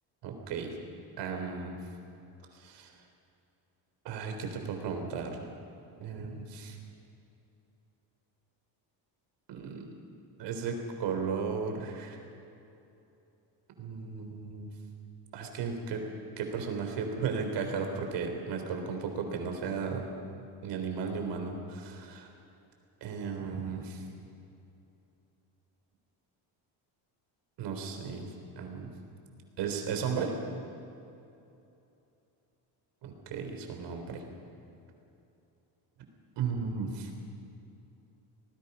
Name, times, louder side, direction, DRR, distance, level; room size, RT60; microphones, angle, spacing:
voice 1, 0.2-0.7 1.2-1.8 2.5-2.9 4.0-5.4 6.0-6.8 9.5-9.9 10.4-12.2 13.8-14.7 15.3-16.1 16.4-20.0 20.6-22.3 23.0-24.0 27.6-28.9 29.6-30.3 33.0-34.2 36.4-37.1, right 5 dB, 65° right, 4 dB, 4.0 m, -35 dB
26.5 x 19.5 x 5.6 m, 2.8 s
cardioid pair, 140°, 45 cm